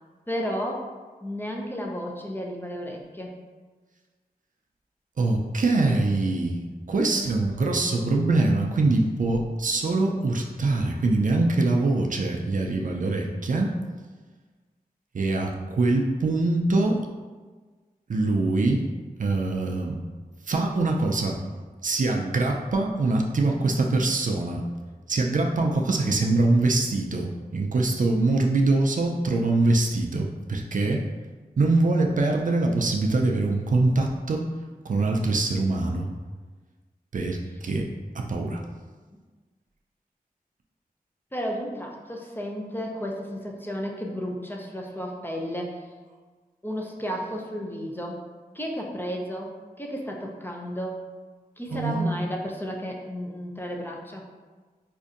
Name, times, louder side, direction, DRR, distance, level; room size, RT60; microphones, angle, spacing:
voice 1, 0.3-0.9 1.2-3.4 7.1-7.6 12.8-13.2 41.3-45.9 46.6-48.2 48.5-51.0 51.6-54.3, equal, 15° left, -1 dB, 0.6 m, -33 dB
voice 2, 5.2-6.6 6.9-13.7 15.1-17.1 18.1-18.9 19.2-20.0 20.5-21.4 21.8-24.7 25.1-31.1 31.6-34.5 34.8-36.1 37.1-37.9 38.1-38.6 51.7-52.2, right 2 dB, 60° right, 1 dB, 0.4 m, -23 dB
4.3 x 2.6 x 2.5 m, 1.4 s
cardioid pair, 50°, 15 cm